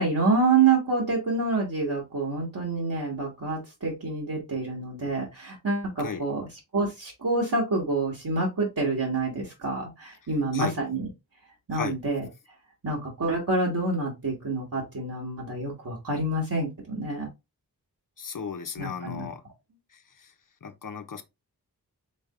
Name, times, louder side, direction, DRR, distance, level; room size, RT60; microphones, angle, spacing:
voice 1, 0.0-6.5 6.7-11.1 11.7-12.3 12.8-17.3 18.8-19.3, right 3 dB, 55° right, 1.7 m, -27 dB
voice 2, 18.2-19.4 19.9-20.3 20.6-21.2, left 6 dB, 55° left, 0.9 m, -34 dB
4.9 x 3.3 x 2.5 m
cardioid pair, 50°, 39 cm